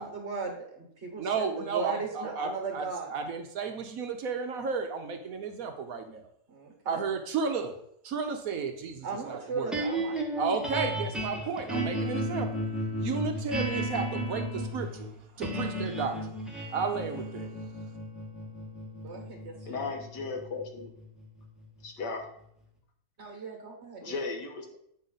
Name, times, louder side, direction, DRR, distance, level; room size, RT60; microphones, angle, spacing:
voice 1, 0.0-3.1 6.5-7.0 9.0-10.2 19.0-19.9 23.2-24.2, right 4 dB, 45° right, 2 dB, 1.6 m, -37 dB
voice 2, 1.2-2.8 3.1-6.2 6.9-7.7 8.0-9.8 10.4-12.7 13.0-15.1 15.4-16.2 16.7-17.5, right 5 dB, 65° right, 6 dB, 1.1 m, -33 dB
sound 1, 9.7-22.0, right 1 dB, ahead, 1.3 m, -34 dB
voice 3, 19.6-20.9 21.8-22.2 24.0-24.8, left 4 dB, 80° left, 3 dB, 1.8 m, -36 dB
8.2 x 5.4 x 3.9 m, 0.72 s
omnidirectional pair, 1.8 m